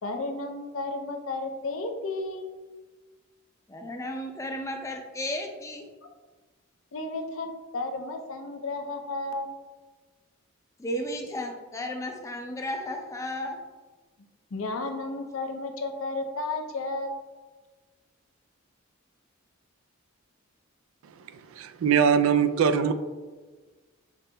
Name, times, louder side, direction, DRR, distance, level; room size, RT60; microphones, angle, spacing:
voice 1, 0.0-2.5 6.9-9.6 14.5-17.1, left 2 dB, 70° left, 5 dB, 0.5 m, -33 dB
voice 2, 3.7-5.9 10.8-13.6, left 1 dB, 15° left, 3 dB, 0.4 m, -34 dB
voice 3, 21.3-22.9, right 7 dB, 70° right, 10 dB, 0.3 m, -22 dB
6.0 x 3.8 x 2.2 m, 1.3 s
head